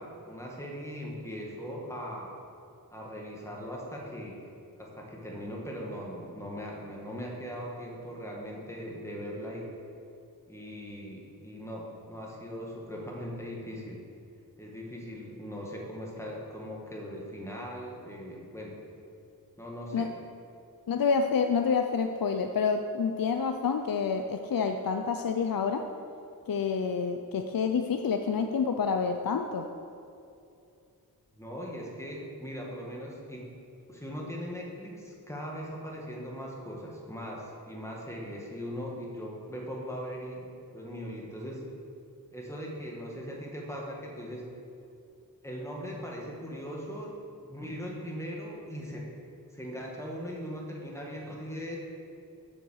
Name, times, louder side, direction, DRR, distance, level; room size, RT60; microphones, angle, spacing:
voice 1, 0.0-2.3 2.9-4.5 4.8-9.7 10.5-14.0 14.6-18.8 19.6-20.1 31.3-33.5 33.9-41.6 42.3-44.4 45.4-47.1 47.5-49.1 49.5-51.8, equal, 5° left, -2 dB, 2.0 m, -39 dB
voice 2, 20.9-25.9 26.5-29.7, left 5 dB, 65° left, 5 dB, 0.6 m, -28 dB
7.2 x 7.0 x 6.5 m, 2.6 s
wide cardioid pair, 75°, 38 cm